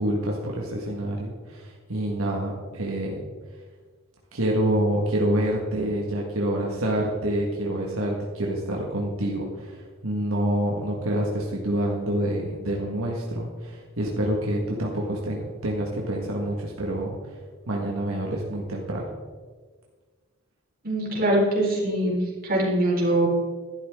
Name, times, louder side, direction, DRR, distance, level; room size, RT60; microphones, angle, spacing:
voice 1, 0.0-3.2 4.3-17.4 17.7-19.1, right 1 dB, 85° right, -2 dB, 1.6 m, -27 dB
voice 2, 20.8-23.3, right 1 dB, 45° right, -4 dB, 4.1 m, -23 dB
12.5 x 11.5 x 3.7 m, 1.5 s
head